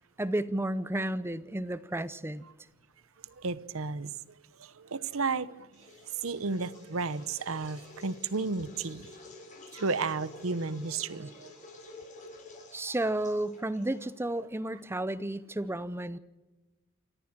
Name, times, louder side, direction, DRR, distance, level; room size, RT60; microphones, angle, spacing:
voice 1, 0.2-2.4 12.7-16.2, right 1 dB, 10° right, 15 dB, 0.6 m, -32 dB
voice 2, 3.2-9.1 9.7-11.5, right 4 dB, 70° right, 17 dB, 0.9 m, -33 dB
sound 1, 5.7-14.3, left 2 dB, 35° left, 7.4 m, -50 dB
27.5 x 14.5 x 7.4 m, 1.1 s
head